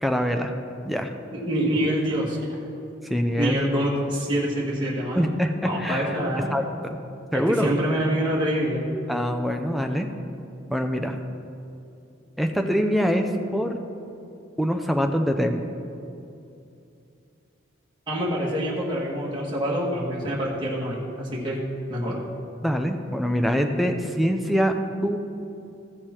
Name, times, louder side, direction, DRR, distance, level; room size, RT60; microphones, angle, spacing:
voice 1, 0.0-0.5 0.8-1.1 3.0-3.7 5.1-6.1 6.5-7.0 7.3-7.7 9.1-10.1 10.7-11.2 12.4-13.8 14.6-15.7 22.6-24.7 25.0-25.2, equal, ahead, 4 dB, 0.5 m, -24 dB
voice 2, 1.3-2.6 3.4-5.3 5.6-6.5 7.3-8.9 18.1-22.2, equal, 25° right, -6 dB, 1.5 m, -26 dB
14.5 x 6.7 x 4.4 m, 2.7 s
head